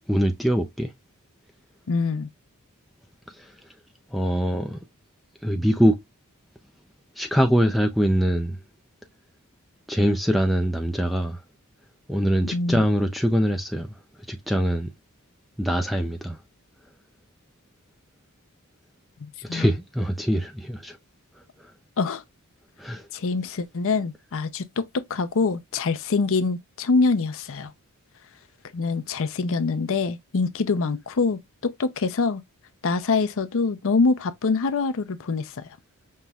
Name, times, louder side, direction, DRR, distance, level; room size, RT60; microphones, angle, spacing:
voice 1, 0.1-0.9 3.3-3.5 4.1-4.8 5.4-6.0 7.2-8.6 9.9-11.4 12.1-13.9 14.3-14.9 15.6-16.4 19.4-21.0 21.6-21.7 22.8-23.1, equal, ahead, 0.4 m, -23 dB
voice 2, 1.9-2.3 12.5-12.8 19.2-19.7 22.0-22.2 23.1-27.7 28.7-32.4 32.8-35.7, left 4 dB, 65° left, 0.6 m, -25 dB
5.5 x 3.1 x 2.3 m
head